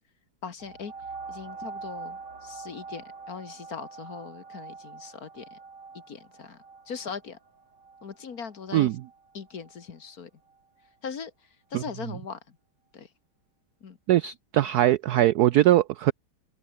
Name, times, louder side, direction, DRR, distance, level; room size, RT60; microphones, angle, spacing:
voice 1, 0.4-0.9 1.3-5.6 6.1-6.6 6.9-7.4 8.0-8.9 9.3-10.3 11.0-11.3 11.7-12.4 12.9-13.1 13.8-14.0, left 6 dB, 45° left, 1.9 m, -39 dB
sound 1, 0.6-9.8 10.5-10.6, right 4 dB, 55° right, 3.9 m, -44 dB
voice 2, 14.1-16.1, right 13 dB, 80° right, 0.8 m, -21 dB
omnidirectional pair, 2.2 m